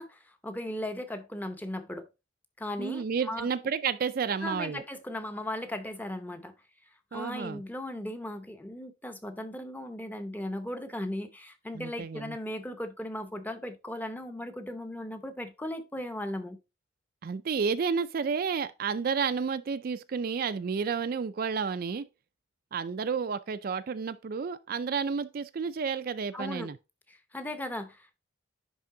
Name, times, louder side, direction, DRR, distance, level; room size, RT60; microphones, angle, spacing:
voice 1, 0.0-2.1 2.6-3.5 4.4-6.5 7.1-16.6 26.3-26.7 27.1-28.2, left 1 dB, 10° left, 0.7 m, -37 dB
voice 2, 2.8-4.8 7.1-7.6 11.7-12.4 17.2-22.0 22.7-26.8, right 6 dB, 50° right, 0.4 m, -31 dB
10.5 x 3.6 x 3.7 m
head